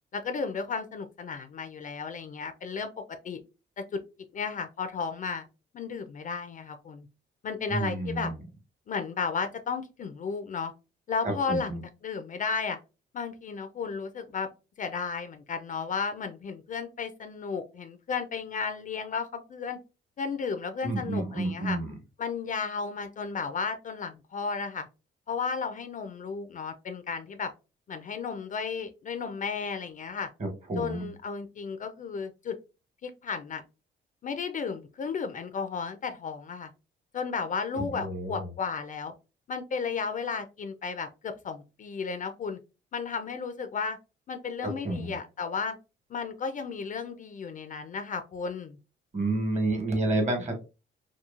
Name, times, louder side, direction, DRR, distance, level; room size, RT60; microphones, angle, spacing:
voice 1, 0.1-2.9 3.2-3.4 3.8-4.0 4.3-5.5 5.7-7.1 7.4-8.3 8.9-10.7 11.1-11.7 12.0-12.8 13.1-14.5 14.8-19.8 20.2-21.8 22.2-24.9 25.3-27.5 27.9-30.3 30.8-32.6 33.0-33.6 34.2-36.7 37.1-39.1 39.5-42.6 42.9-44.0 44.3-45.8 46.1-48.8, left 5 dB, 40° left, 9 dB, 0.4 m, -33 dB
voice 2, 7.7-8.4 11.2-11.8 20.8-22.0 30.4-31.1 37.7-38.5 44.6-45.2 49.1-50.6, right 2 dB, 35° right, 3 dB, 1.1 m, -30 dB
2.9 x 2.3 x 2.3 m, 0.30 s
cardioid pair, 90°, 20 cm